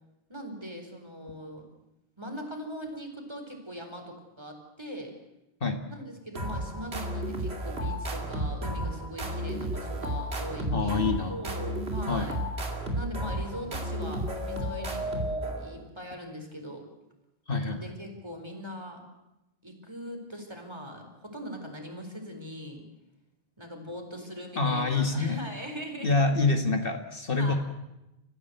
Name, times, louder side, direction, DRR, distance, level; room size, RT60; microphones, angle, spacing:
voice 1, 0.3-1.7 2.2-5.1 5.9-12.4 12.9-16.9 17.7-19.0 19.6-22.8 23.6-26.3 27.3-27.6, equal, 25° right, 3 dB, 4.5 m, -41 dB
sound 1, 6.4-15.9, right 1 dB, 80° right, 3.0 m, -33 dB
voice 2, 10.7-11.4 12.1-12.4 17.5-17.8 24.6-25.4 26.0-27.5, left 3 dB, 60° left, 6 dB, 1.9 m, -26 dB
29.0 x 15.0 x 8.0 m, 0.96 s
omnidirectional pair, 1.0 m